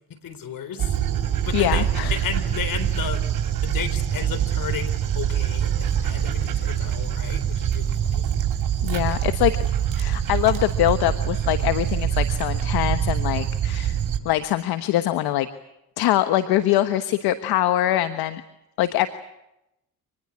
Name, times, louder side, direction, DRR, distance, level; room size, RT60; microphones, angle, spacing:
voice 1, 0.1-1.0 1.4-1.8 2.1-3.2 3.6-8.3, left 7 dB, 60° left, 12 dB, 4.2 m, -33 dB
Dog, 0.8-14.2, right 9 dB, 60° right, 5.9 m, -24 dB
voice 2, 1.5-2.2 8.8-9.6 10.0-14.0 14.2-15.5 16.0-18.4 18.8-19.1, left 14 dB, 80° left, 10 dB, 1.3 m, -23 dB
26.5 x 20.5 x 8.5 m, 0.88 s
supercardioid pair, 65°, 37 cm